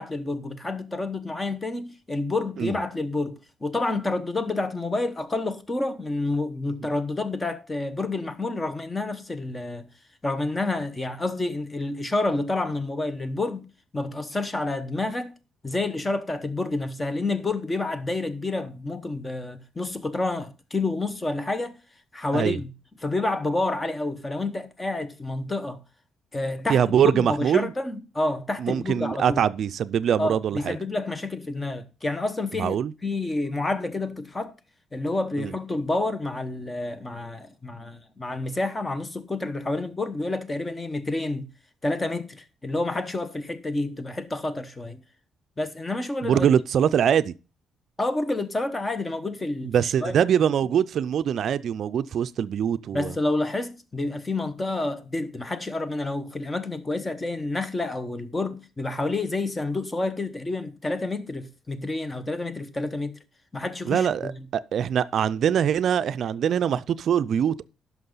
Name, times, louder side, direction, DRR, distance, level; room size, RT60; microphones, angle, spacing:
voice 1, 0.0-9.9 10.2-13.7 13.9-15.3 15.6-21.8 22.1-22.7 23.0-25.8 26.3-29.4 30.2-32.8 33.0-34.5 34.9-41.5 41.8-45.0 45.6-46.5 48.0-50.1 52.9-63.2 63.5-64.4, left 2 dB, 20° left, 1.0 m, -29 dB
voice 2, 26.7-27.7 28.6-30.8 32.6-32.9 35.4-35.5 46.2-47.3 49.6-53.1 63.8-67.6, right 8 dB, 65° right, 0.3 m, -23 dB
11.0 x 6.1 x 3.9 m
cardioid pair, 90°, 0 cm